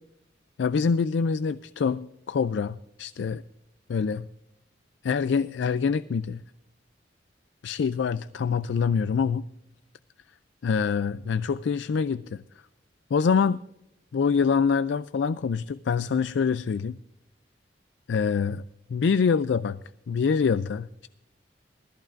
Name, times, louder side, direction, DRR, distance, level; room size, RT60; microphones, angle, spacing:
voice 1, 0.6-3.4 3.9-4.3 5.0-6.4 7.6-9.5 10.6-12.4 13.1-13.6 14.1-17.0 18.1-18.6 18.9-19.8 20.1-21.1, left 6 dB, 70° left, 0.4 m, -25 dB
19.5 x 14.0 x 2.5 m
head